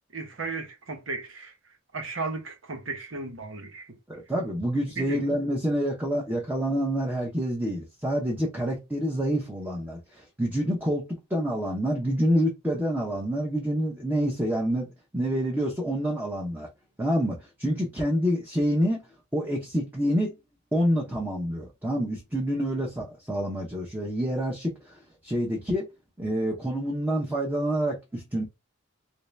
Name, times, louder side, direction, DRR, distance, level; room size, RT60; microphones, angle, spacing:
voice 1, 0.1-1.5 1.9-3.9 5.0-5.2, right 3 dB, 90° right, 1.1 m, -35 dB
voice 2, 4.1-16.7 17.0-19.0 19.3-20.3 20.7-25.9 26.2-28.4, equal, 10° right, 0.7 m, -27 dB
3.1 x 2.7 x 3.3 m
head